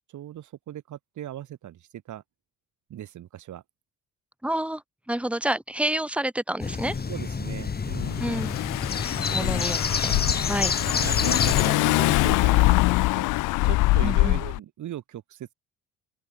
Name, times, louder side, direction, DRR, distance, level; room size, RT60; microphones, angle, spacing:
voice 1, 0.1-2.2 2.9-3.6 7.1-8.3 9.3-9.5 10.5-10.6 10.9-12.8 13.1-13.2 13.6-15.5, right 12 dB, 75° right, 5.1 m, -38 dB
voice 2, 4.4-4.8 5.1-6.9 8.2-8.5 9.3-10.1 10.5-10.7 14.0-14.4, right 1 dB, 5° right, 2.6 m, -28 dB
sound 1, 6.6-11.7, left 5 dB, 30° left, 4.2 m, -28 dB
Car / Engine, 7.7-14.6, left 21 dB, 90° left, 0.5 m, -23 dB
open air
cardioid pair, 90°, 30 cm